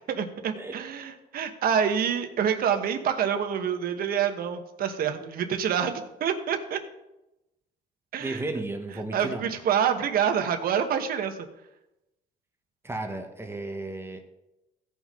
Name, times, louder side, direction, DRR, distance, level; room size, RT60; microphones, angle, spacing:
voice 1, 0.1-6.8 8.1-8.4 9.1-11.4, right 8 dB, 60° right, 6 dB, 1.3 m, -27 dB
voice 2, 8.2-9.5 12.8-14.2, right 2 dB, 15° right, 5 dB, 1.1 m, -34 dB
16.0 x 5.6 x 3.8 m, 0.93 s
cardioid pair, 110°, 17 cm